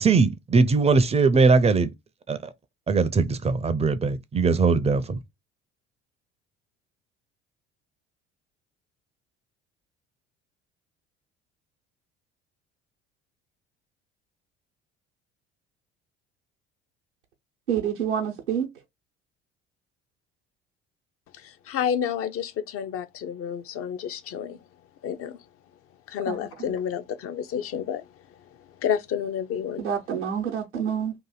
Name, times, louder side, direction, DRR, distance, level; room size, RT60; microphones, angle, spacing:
voice 1, 0.0-1.9 2.3-2.4 2.9-5.2, right 4 dB, 20° right, 0.5 m, -20 dB
voice 2, 17.7-18.7 26.3-26.5 29.8-31.1, right 8 dB, 85° right, 0.8 m, -27 dB
voice 3, 21.3-24.6 25.0-25.4 26.1-29.9, left 8 dB, 45° left, 0.6 m, -30 dB
2.8 x 2.6 x 3.9 m
figure-of-eight pair, 55°, 33 cm